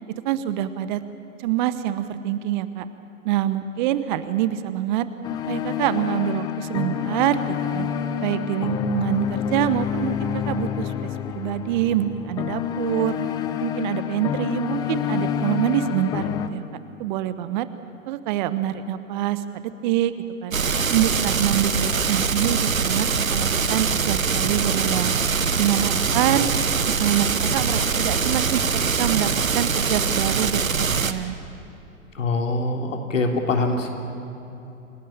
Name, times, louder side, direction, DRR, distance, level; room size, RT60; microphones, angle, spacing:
voice 1, 0.2-1.0 1.4-2.8 3.2-5.1 5.5-7.9 8.2-10.9 11.3-13.2 13.6-16.6 17.0-17.7 18.1-20.1 20.4-20.6 20.9-25.1 25.6-26.6 26.9-28.6 29.0-30.7 31.0-31.4, right 12 dB, 35° right, 13 dB, 1.0 m, -25 dB
sound 1, 5.2-16.5, left 9 dB, 10° left, 0.4 m, -28 dB
sound 2, 20.5-31.1, right 5 dB, 80° right, 1.3 m, -23 dB
voice 2, 32.2-33.9, left 3 dB, 65° left, 3 dB, 3.6 m, -24 dB
28.0 x 17.5 x 8.8 m, 2.9 s
figure-of-eight pair, 110°, 40 cm